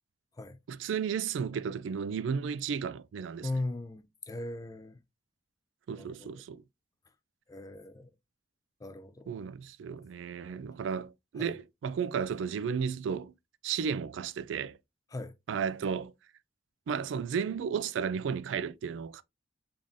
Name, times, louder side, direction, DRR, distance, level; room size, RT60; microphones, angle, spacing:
voice 1, 0.7-3.5 5.9-6.6 9.3-13.3 13.6-14.8 15.5-16.1 16.9-19.2, right 6 dB, 75° right, 0.3 m, -33 dB
voice 2, 3.4-5.0 5.9-6.3 7.5-8.1 8.8-9.3 11.4-11.5 15.1-15.3, left 2 dB, 20° left, 0.3 m, -38 dB
3.6 x 3.5 x 2.5 m
head